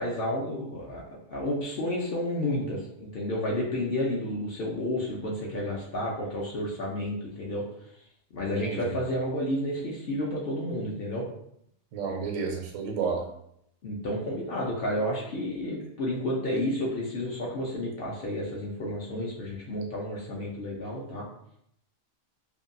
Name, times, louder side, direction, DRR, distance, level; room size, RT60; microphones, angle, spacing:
voice 1, 0.0-7.6 8.3-11.3 13.8-21.3, left 1 dB, 60° left, -3 dB, 0.6 m, -31 dB
voice 2, 8.6-9.0 11.9-13.3, right 5 dB, 85° right, 2 dB, 1.0 m, -31 dB
2.7 x 2.2 x 2.5 m, 0.73 s
omnidirectional pair, 1.4 m